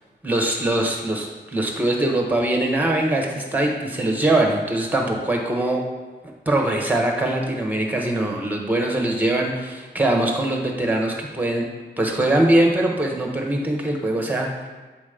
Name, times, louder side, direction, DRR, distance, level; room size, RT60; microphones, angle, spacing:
voice 1, 0.2-5.8 6.5-11.6 12.0-14.7, right 1 dB, 10° right, 1 dB, 1.0 m, -22 dB
7.7 x 3.0 x 5.0 m, 1.3 s
wide cardioid pair, 115°, 19 cm